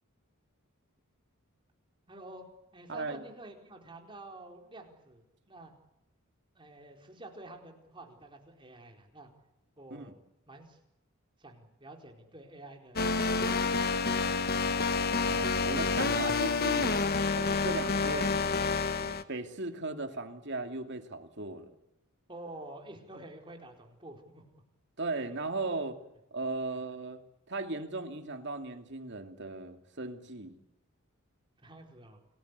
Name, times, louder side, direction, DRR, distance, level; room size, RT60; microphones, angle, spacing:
voice 1, 2.1-2.5 2.7-5.7 6.5-9.3 9.8-10.1 10.5-10.8 11.4-13.2 22.3-24.4 26.7-26.8 31.6-32.2, right 2 dB, 25° right, 2 dB, 4.4 m, -49 dB
voice 2, 2.9-3.2 9.9-10.1 15.3-17.0 17.3-18.4 19.0-21.7 25.0-26.0 26.3-27.2 27.5-30.5, right 3 dB, 55° right, 6 dB, 2.6 m, -37 dB
sound 1, 13.0-19.2, left 4 dB, 45° left, 1.3 m, -28 dB
29.0 x 19.5 x 8.3 m, 0.91 s
head